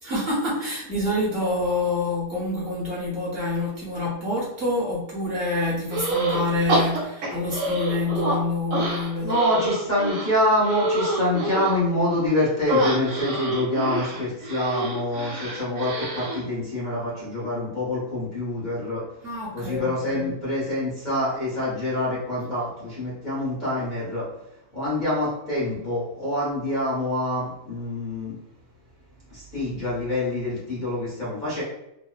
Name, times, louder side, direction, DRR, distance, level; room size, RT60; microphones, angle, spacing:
voice 1, 0.0-9.4 19.2-20.3, left 2 dB, 50° right, -7 dB, 1.0 m, -27 dB
sound 1, 5.9-6.4 6.7-8.4 8.7-11.8 12.7-16.4, right 1 dB, 75° right, 1.1 m, -26 dB
voice 2, 9.2-19.1 19.5-24.3 24.7-28.3 29.3-31.6, left 1 dB, 40° left, -8 dB, 0.9 m, -26 dB
2.9 x 2.0 x 2.3 m, 0.84 s
omnidirectional pair, 1.4 m